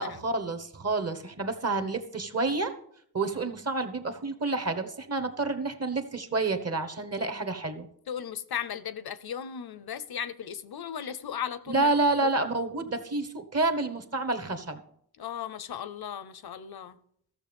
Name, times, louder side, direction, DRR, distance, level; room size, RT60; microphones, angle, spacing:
voice 1, 0.0-2.7 3.1-7.9 11.7-14.8, right 3 dB, 40° right, 1.2 m, -29 dB
voice 2, 8.1-11.9 12.2-12.3 15.2-17.0, left 8 dB, 75° left, 0.8 m, -36 dB
13.5 x 6.9 x 5.3 m
wide cardioid pair, 100°, 38 cm